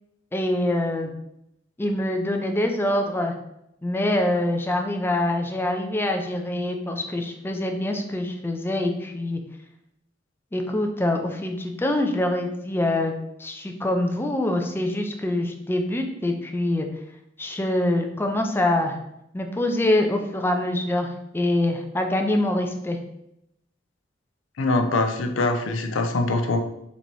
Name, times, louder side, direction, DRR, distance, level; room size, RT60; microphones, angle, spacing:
voice 1, 0.3-1.1 1.8-3.3 3.8-9.4 10.5-16.9 17.4-19.0 19.3-23.0, left 1 dB, 10° left, 3 dB, 0.4 m, -25 dB
voice 2, 24.6-26.6, left 2 dB, 85° left, 6 dB, 0.5 m, -23 dB
4.0 x 2.9 x 4.5 m, 0.80 s
head